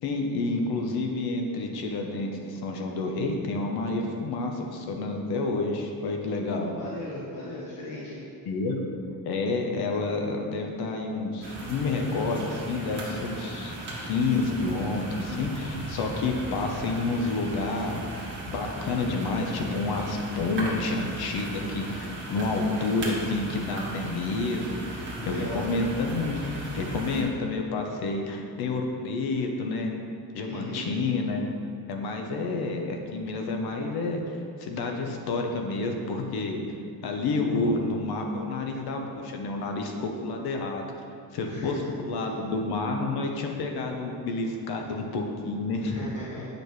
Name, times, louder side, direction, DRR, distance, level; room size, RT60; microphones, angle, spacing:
voice 1, 0.0-6.7 8.5-8.8 9.3-13.7 14.0-18.0 18.5-26.4 26.7-30.0 30.3-31.4 31.9-36.6 37.0-40.8 41.3-45.9, left 3 dB, 80° left, 3 dB, 0.9 m, -29 dB
voice 2, 6.5-8.2 25.2-25.7 30.4-30.9 41.5-41.9 42.2-42.3 44.8-44.9 45.8-46.5, left 2 dB, 55° left, -7 dB, 1.2 m, -37 dB
sound 1, 11.4-27.2, right 1 dB, 30° right, 1.6 m, -37 dB
8.5 x 5.2 x 3.1 m, 2.4 s
cardioid pair, 150°, 37 cm